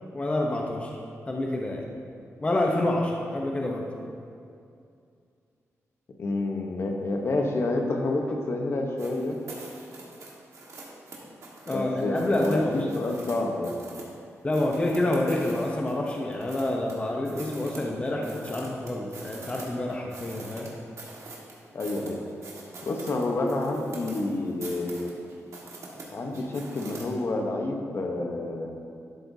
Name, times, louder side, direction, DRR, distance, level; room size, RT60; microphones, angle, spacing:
voice 1, 0.1-0.9 1.3-1.9 2.4-3.8 11.6-12.9 14.4-20.7, left 1 dB, 20° left, 0 dB, 0.7 m, -27 dB
voice 2, 6.2-9.4 11.7-13.8 21.7-22.2 22.8-25.1 26.1-28.8, left 2 dB, 50° left, 2 dB, 0.9 m, -29 dB
sound 1, 9.0-13.4 13.6-14.1 14.5-17.0 17.3-19.6 19.9-27.0, right 3 dB, 65° right, 1.6 m, -44 dB
12.0 x 7.6 x 2.7 m, 2.5 s
wide cardioid pair, 120°, 5 cm